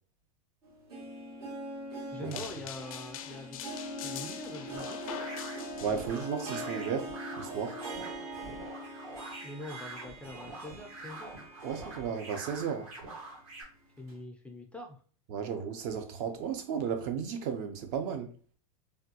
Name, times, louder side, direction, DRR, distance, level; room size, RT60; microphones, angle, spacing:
Harp, 0.6-12.8 13.1-13.2 14.1-14.2, right 1 dB, 85° right, 1.3 m, -42 dB
voice 1, 2.1-3.6 4.0-5.0 9.4-11.4 14.0-15.0, left 2 dB, 5° left, 0.3 m, -44 dB
sound 1, 2.3-6.3, left 10 dB, 70° left, 0.4 m, -44 dB
sound 2, 4.7-13.6, right 2 dB, 65° right, 1.5 m, -45 dB
voice 2, 5.8-7.8 11.6-12.9 15.3-18.3, right 7 dB, 50° right, 0.5 m, -34 dB
3.4 x 2.2 x 2.7 m
hypercardioid pair, 125°, 18 cm